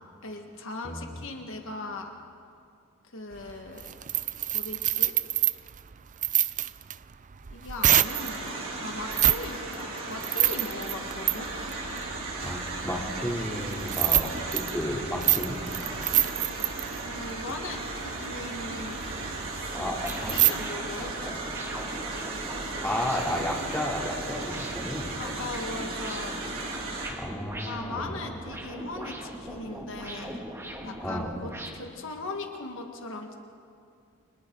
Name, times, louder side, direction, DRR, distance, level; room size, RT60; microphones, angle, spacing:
voice 1, 0.2-2.1 3.1-3.9 4.5-5.1 7.5-11.5 17.0-19.0 19.7-21.4 25.2-26.4 27.6-30.4 30.8-33.3, left 2 dB, 65° left, 3 dB, 1.7 m, -39 dB
voice 2, 0.8-1.2 12.4-15.6 19.8-20.5 22.8-25.1 27.0-28.1 31.0-31.3, left 1 dB, 10° left, -3 dB, 3.1 m, -33 dB
sound 1, 3.3-8.4 9.0-9.5 9.7-20.5, right 13 dB, 35° right, 0.5 m, -28 dB
sound 2, 8.0-27.1, right 2 dB, 70° right, 4.6 m, -36 dB
sound 3, 19.7-31.7, right 1 dB, 15° right, 2.1 m, -40 dB
30.0 x 26.0 x 3.9 m, 2.4 s
head